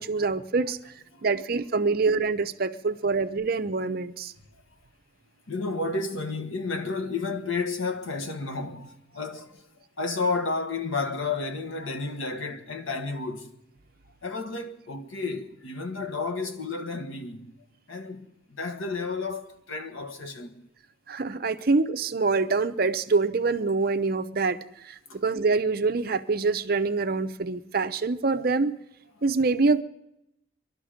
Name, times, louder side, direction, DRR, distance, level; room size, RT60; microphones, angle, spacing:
voice 1, 0.0-0.9 1.2-4.3 21.1-28.8 29.2-29.8, right 4 dB, 45° right, 0.6 m, -25 dB
voice 2, 5.5-9.7 10.0-13.5 14.2-17.5 17.9-20.6 25.1-25.2 29.1-29.2, left 3 dB, 80° left, 1.4 m, -32 dB
23.5 x 12.0 x 5.1 m
head